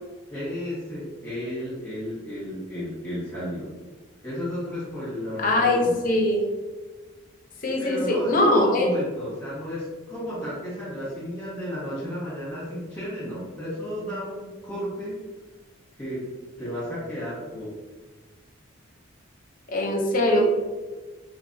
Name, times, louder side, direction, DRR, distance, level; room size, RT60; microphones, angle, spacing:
voice 1, 0.3-3.7 4.2-5.9 7.8-15.2 16.0-16.2 16.6-17.7, equal, 10° left, -11 dB, 1.3 m, -33 dB
voice 2, 5.4-6.4 7.6-8.9 19.7-20.5, left 1 dB, 40° left, 1 dB, 0.6 m, -21 dB
3.3 x 3.1 x 2.7 m, 1.3 s
head